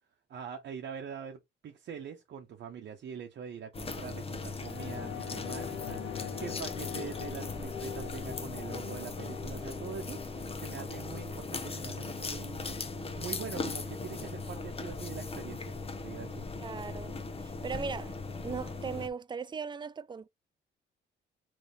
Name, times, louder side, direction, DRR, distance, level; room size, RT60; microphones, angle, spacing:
voice 1, 0.3-15.8 16.0-16.5, right 7 dB, 60° right, 0.9 m, -44 dB
sound 1, 3.7-19.1, left 3 dB, 30° left, 0.8 m, -39 dB
sound 2, 4.5-13.5 13.9-14.0, left 9 dB, 65° left, 1.2 m, -44 dB
voice 2, 16.6-18.2 18.4-20.3, right 5 dB, 25° right, 0.4 m, -38 dB
3.4 x 3.4 x 4.0 m
cardioid pair, 90°, 20 cm